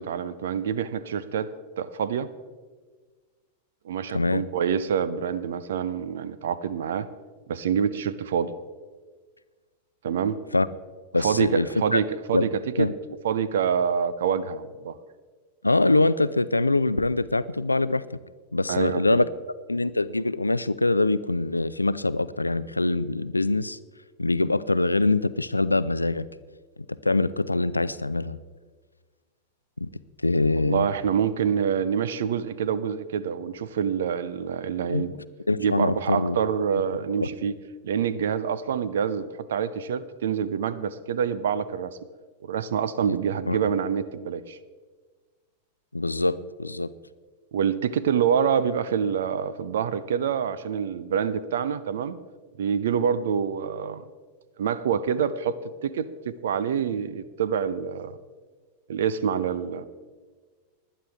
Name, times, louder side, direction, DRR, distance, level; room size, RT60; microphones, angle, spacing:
voice 1, 0.0-2.3 3.8-7.1 7.5-8.5 10.0-10.4 11.2-12.9 13.2-15.0 18.7-19.2 30.6-35.1 35.6-37.5 37.8-42.0 42.4-44.6 47.5-52.2 52.6-54.1 54.6-58.2 58.9-59.8, right 7 dB, 60° right, 17 dB, 0.6 m, -26 dB
voice 2, 4.1-4.5 10.5-10.7 11.1-12.0 12.3-12.5 12.8-12.9 15.6-18.2 18.5-19.3 19.7-23.8 24.2-26.3 27.0-28.4 29.8-29.9 30.2-30.9 34.9-35.1 35.5-36.4 37.2-37.3 43.1-43.2 43.5-43.6 45.9-46.9, left 2 dB, 85° left, 17 dB, 0.4 m, -24 dB
20.0 x 11.0 x 3.5 m, 1.4 s
figure-of-eight pair, 90°, 0 cm